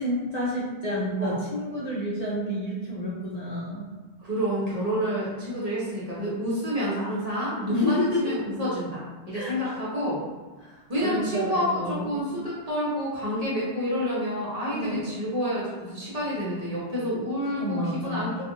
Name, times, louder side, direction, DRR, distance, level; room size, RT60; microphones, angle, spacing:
voice 1, 0.0-3.9 7.7-8.3 9.3-9.8 10.6-12.3 14.7-15.1 17.6-18.4, equal, 50° left, -8 dB, 0.6 m, -30 dB
voice 2, 4.2-10.2 10.9-18.3, equal, 40° right, -8 dB, 0.7 m, -28 dB
2.3 x 2.3 x 2.9 m, 1.3 s
omnidirectional pair, 1.1 m